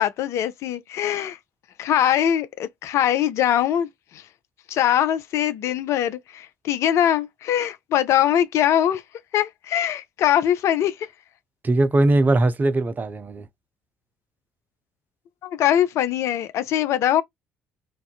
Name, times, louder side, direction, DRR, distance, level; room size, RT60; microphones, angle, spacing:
voice 1, 0.0-1.4 1.8-3.9 4.1-4.2 4.7-9.0 9.3-11.1 15.4-17.2, left 11 dB, 55° left, 0.4 m, -22 dB
voice 2, 11.6-13.4, right 2 dB, 30° right, 0.6 m, -20 dB
2.5 x 2.3 x 2.3 m
hypercardioid pair, 50°, 6 cm